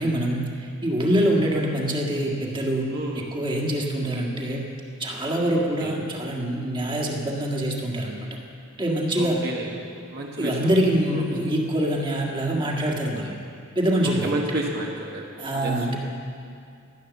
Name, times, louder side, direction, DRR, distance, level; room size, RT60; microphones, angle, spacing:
voice 1, 0.0-2.9 3.2-4.6 5.0-8.3 8.8-9.4 10.4-13.3 13.8-14.4 15.4-16.0, right 1 dB, 25° right, -1 dB, 1.7 m, -25 dB
voice 2, 2.9-3.2 5.8-5.9 9.2-9.7 10.1-10.6 11.1-11.2 14.2-15.3 15.6-15.7, right 1 dB, 50° right, -2 dB, 1.3 m, -30 dB
14.5 x 10.5 x 7.1 m, 2.4 s
head